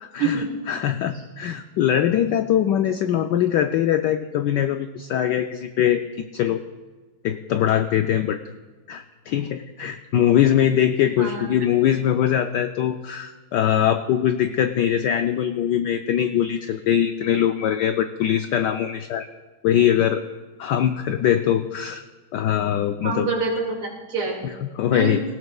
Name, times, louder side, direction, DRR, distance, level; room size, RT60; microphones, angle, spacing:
voice 1, 0.0-6.0 6.3-6.6 7.2-8.4 8.9-19.3 19.6-20.2 20.6-22.0 22.3-23.3 24.4-25.2, left 10 dB, 85° left, 8 dB, 0.9 m, -22 dB
voice 2, 23.0-24.3 24.9-25.2, right 4 dB, 75° right, 0 dB, 3.2 m, -26 dB
18.0 x 16.5 x 2.3 m, 1.3 s
omnidirectional pair, 2.4 m